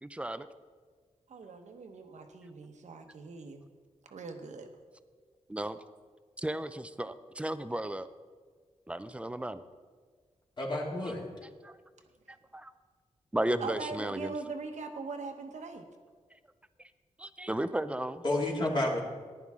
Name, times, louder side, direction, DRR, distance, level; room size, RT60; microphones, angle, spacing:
voice 1, 0.0-0.5 5.5-5.8 6.4-8.1 8.9-9.6 11.6-11.8 12.3-12.7 13.3-14.3 17.2-18.2, right 1 dB, 10° right, 12 dB, 0.5 m, -34 dB
voice 2, 1.3-3.6 4.1-4.7 13.6-15.8, right 4 dB, 75° right, 6 dB, 1.2 m, -41 dB
voice 3, 10.6-11.2 18.2-19.0, left 1 dB, 40° left, -2 dB, 2.4 m, -30 dB
15.0 x 10.5 x 3.7 m, 1.5 s
wide cardioid pair, 115°, 12 cm